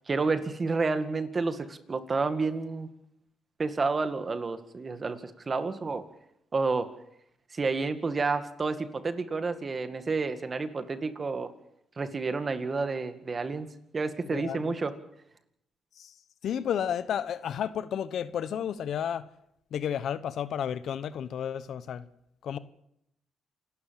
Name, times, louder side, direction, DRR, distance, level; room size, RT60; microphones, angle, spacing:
voice 1, 0.1-2.9 3.6-6.1 6.5-6.9 7.5-11.5 12.0-13.7 13.9-14.9, right 4 dB, 35° right, 2.0 m, -30 dB
voice 2, 14.3-14.7 16.0-16.1 16.4-19.2 19.7-22.0 22.4-22.6, left 9 dB, 65° left, 1.0 m, -32 dB
28.0 x 12.5 x 7.6 m
cardioid pair, 90°, 0 cm